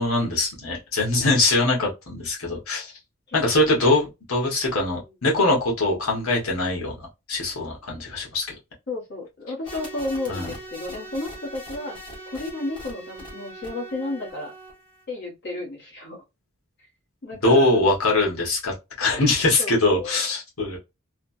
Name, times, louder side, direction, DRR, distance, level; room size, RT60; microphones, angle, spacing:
voice 1, 0.0-2.9 3.3-6.9 7.3-8.5 10.3-10.5 17.4-20.8, left 2 dB, 75° left, 1.2 m, -22 dB
voice 2, 8.9-12.0 12.3-14.5 15.1-16.2 17.2-17.8 19.6-20.2, left 2 dB, 50° left, 1.1 m, -32 dB
sound 1, 9.6-15.0, equal, 20° left, 1.2 m, -41 dB
3.2 x 2.1 x 2.6 m
head